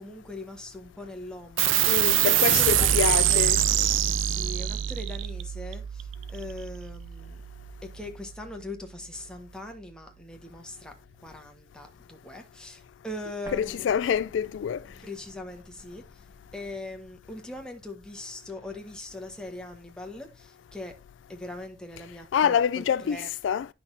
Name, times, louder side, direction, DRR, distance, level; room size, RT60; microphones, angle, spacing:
voice 1, 0.0-3.5 4.2-7.4 7.8-10.9 11.2-14.0 15.0-16.3 16.5-20.9 21.3-23.3, left 1 dB, 5° left, 1.4 m, -41 dB
sound 1, 1.6-8.5, right 11 dB, 80° right, 0.6 m, -25 dB
voice 2, 1.8-3.6 13.5-14.8 22.3-23.7, left 8 dB, 65° left, 0.3 m, -26 dB
Explosion, 13.4-18.2, equal, 15° right, 1.3 m, -51 dB
10.5 x 5.9 x 2.6 m
head